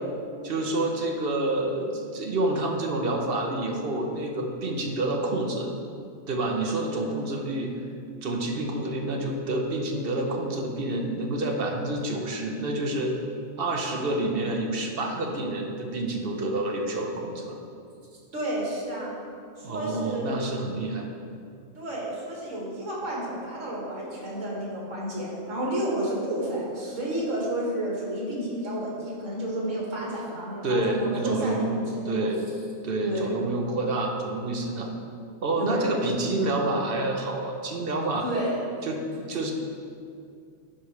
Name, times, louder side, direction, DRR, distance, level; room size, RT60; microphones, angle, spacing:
voice 1, 0.4-5.7 6.3-7.7 8.2-13.1 13.6-17.6 19.6-21.1 30.6-31.7 32.1-32.4 32.8-34.9 35.4-38.3 38.8-39.5, right 2 dB, 50° right, 2 dB, 0.9 m, -28 dB
voice 2, 18.3-19.2 19.6-20.4 21.8-32.3 33.0-33.3 35.6-36.0 38.2-38.6, right 1 dB, 70° right, -5 dB, 2.1 m, -31 dB
11.0 x 4.9 x 3.2 m, 2.4 s
omnidirectional pair, 1.3 m